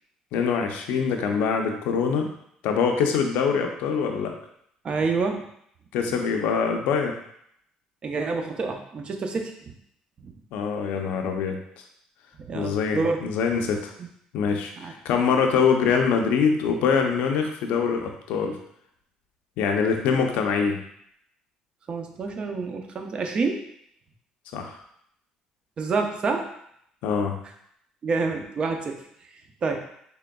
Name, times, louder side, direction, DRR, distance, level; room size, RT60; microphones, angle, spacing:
voice 1, 0.3-2.3 2.6-4.3 5.9-7.1 10.5-11.6 12.5-13.9 14.3-18.6 19.6-20.8 24.5-24.7 27.0-27.4, left 6 dB, 80° left, 3 dB, 0.5 m, -24 dB
voice 2, 4.8-5.5 8.0-9.7 10.2-10.3 12.4-13.2 14.8-14.9 21.9-23.6 25.8-26.5 28.0-29.0 29.6-29.8, right 4 dB, 40° right, 4 dB, 0.6 m, -27 dB
3.7 x 3.4 x 2.3 m, 0.71 s
supercardioid pair, 80°, 3 cm